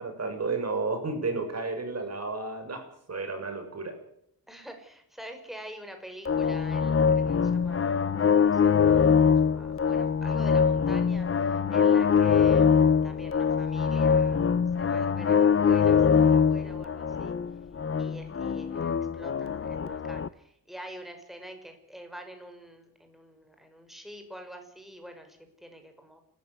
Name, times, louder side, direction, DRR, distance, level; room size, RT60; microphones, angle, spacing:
voice 1, 0.0-4.0, right 3 dB, 45° right, 6 dB, 6.6 m, -32 dB
voice 2, 4.5-14.5 14.8-17.3 18.0-26.2, equal, ahead, 6 dB, 5.5 m, -46 dB
sound 1, 6.3-20.3, left 6 dB, 35° left, 0.8 m, -23 dB
29.5 x 14.0 x 8.3 m, 0.72 s
wide cardioid pair, 105°, 37 cm